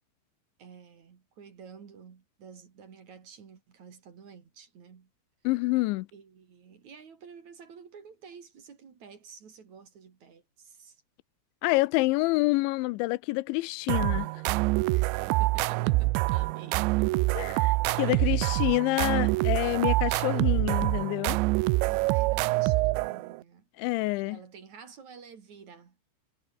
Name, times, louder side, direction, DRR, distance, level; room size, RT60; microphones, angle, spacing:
voice 1, 0.6-5.1 6.1-11.0 14.9-16.9 17.9-18.5 21.9-23.7 24.2-26.0, right 6 dB, 45° right, 3.5 m, -50 dB
voice 2, 5.4-6.1 11.6-14.3 17.3-21.4 23.8-24.4, left 22 dB, 90° left, 3.0 m, -27 dB
sound 1, 13.9-23.4, right 22 dB, 85° right, 2.9 m, -26 dB
omnidirectional pair, 5.2 m